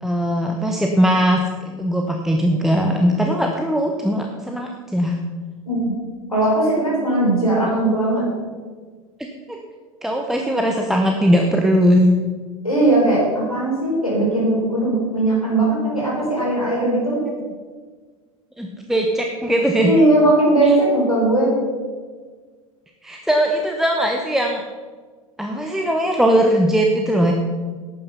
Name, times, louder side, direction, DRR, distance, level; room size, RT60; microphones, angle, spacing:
voice 1, 0.0-5.2 9.5-9.6 10.0-12.1 18.6-19.9 23.0-24.6 25.4-27.3, equal, ahead, 1 dB, 1.1 m, -19 dB
voice 2, 6.3-8.2 12.6-17.2 19.8-21.5, right 2 dB, 90° left, -5 dB, 3.9 m, -18 dB
11.5 x 9.2 x 5.7 m, 1.5 s
figure-of-eight pair, 80°, 18 cm